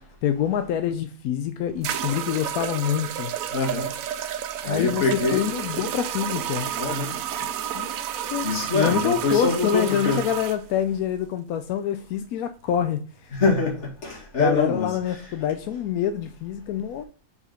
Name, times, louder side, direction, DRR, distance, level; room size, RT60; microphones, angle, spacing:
voice 1, 0.2-3.3 4.6-6.7 7.0-7.1 7.4-7.9 8.3-8.5 8.7-13.4 14.4-17.0, left 9 dB, 90° left, 1.1 m, -26 dB
sound 1, 1.0-1.1 1.8-10.6, right 10 dB, 75° right, 1.0 m, -31 dB
voice 2, 3.5-3.9 4.6-5.5 6.8-7.2 8.4-10.2 13.3-14.9, left 3 dB, 50° left, 2.3 m, -24 dB
4.9 x 4.2 x 5.0 m
omnidirectional pair, 1.5 m